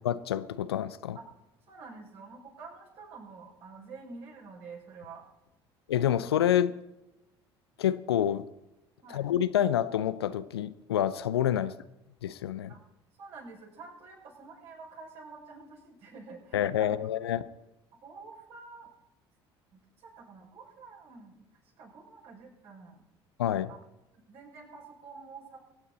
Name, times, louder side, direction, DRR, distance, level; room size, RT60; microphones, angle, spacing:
voice 1, 0.0-1.2 5.9-6.7 7.8-8.4 9.1-11.7 12.2-12.7 16.5-17.4 23.4-23.7, left 10 dB, 75° left, 16 dB, 0.6 m, -27 dB
voice 2, 1.7-5.2 9.0-9.3 12.7-12.8 13.2-17.1 18.0-18.9 19.7-21.5 21.8-23.1 23.7-23.8 24.1-25.6, right 4 dB, 55° right, -3 dB, 6.1 m, -48 dB
24.0 x 9.2 x 4.1 m, 0.95 s
figure-of-eight pair, 60°, 13 cm